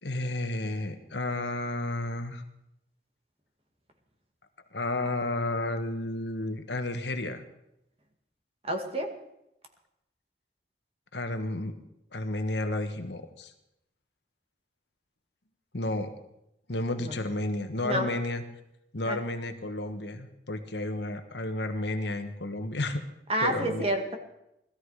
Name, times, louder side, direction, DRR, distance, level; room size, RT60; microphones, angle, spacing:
voice 1, 0.0-2.4 4.7-7.4 11.1-11.8 12.1-13.5 15.7-16.1 16.7-18.4 18.9-23.0 23.4-23.8, left 2 dB, 75° left, 7 dB, 1.5 m, -32 dB
voice 2, 8.7-9.1 17.0-17.1 17.8-18.1 19.0-19.2 23.3-24.2, right 1 dB, 35° right, 4 dB, 2.2 m, -28 dB
19.0 x 13.5 x 4.9 m, 0.83 s
head